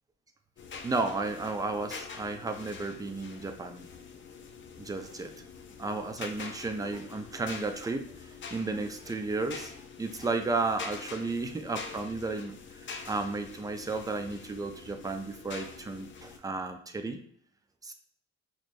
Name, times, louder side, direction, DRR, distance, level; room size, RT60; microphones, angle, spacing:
sound 1, 0.6-16.4, left 5 dB, 40° left, 0.5 m, -45 dB
voice 1, 0.8-3.9 4.8-5.3 5.8-9.7 10.0-12.6 13.1-17.2 17.8-17.9, right 3 dB, 10° right, 6 dB, 0.4 m, -33 dB
6.1 x 2.1 x 2.6 m, 0.63 s
cardioid pair, 90°, 30 cm